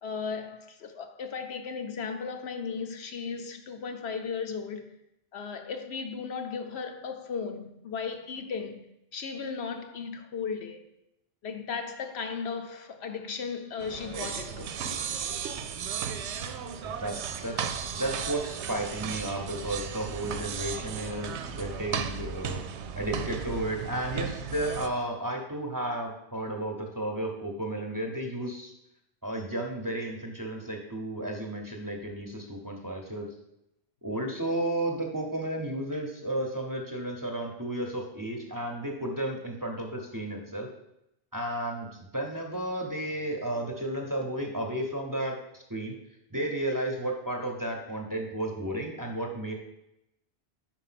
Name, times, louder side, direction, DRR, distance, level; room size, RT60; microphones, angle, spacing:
voice 1, 0.0-4.9 5.3-8.8 9.1-10.8 11.4-14.7, left 5 dB, 75° left, 0.9 m, -36 dB
sound 1, 13.8-24.9, right 7 dB, 90° right, 0.9 m, -35 dB
voice 2, 16.8-22.6 23.0-28.7 29.2-33.3 34.0-40.7 41.3-45.9 46.3-49.5, right 1 dB, 20° right, 0.8 m, -33 dB
5.1 x 4.6 x 5.8 m
omnidirectional pair, 1.1 m